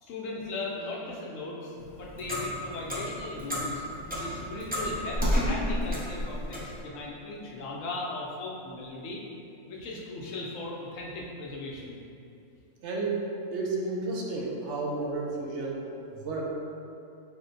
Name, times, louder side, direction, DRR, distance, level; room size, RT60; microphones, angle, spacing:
voice 1, 0.0-3.8 4.1-9.2 9.7-12.0, left 2 dB, 85° left, -3 dB, 1.1 m, -38 dB
Clock, 1.8-6.8, equal, 15° right, 0.3 m, -31 dB
voice 2, 12.8-13.2 13.5-16.4, right 3 dB, 70° right, -3 dB, 0.9 m, -32 dB
4.8 x 2.1 x 3.8 m, 2.6 s
omnidirectional pair, 1.3 m